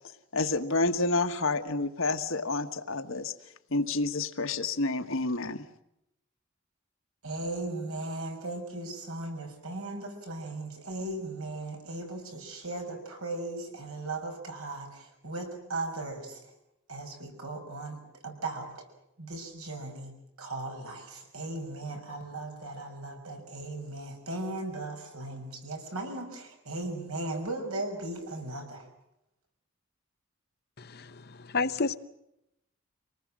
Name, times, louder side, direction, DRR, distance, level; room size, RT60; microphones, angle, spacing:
voice 1, 0.3-3.3 3.7-5.6, left 3 dB, 65° left, 8 dB, 1.4 m, -29 dB
voice 2, 7.2-16.5 16.9-18.8 19.2-28.9, right 2 dB, 75° right, 3 dB, 6.2 m, -37 dB
voice 3, 30.8-32.0, left 4 dB, 45° left, 12 dB, 0.8 m, -31 dB
25.5 x 19.5 x 7.5 m, 0.84 s
head